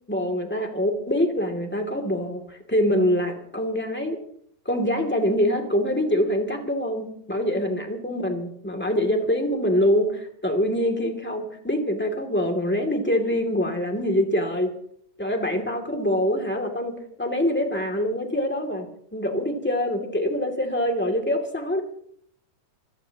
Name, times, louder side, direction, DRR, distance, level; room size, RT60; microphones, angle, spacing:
voice 1, 0.1-4.2 4.6-14.7 15.2-21.8, equal, 5° left, 3 dB, 2.0 m, -25 dB
26.5 x 17.0 x 3.0 m, 0.65 s
omnidirectional pair, 3.7 m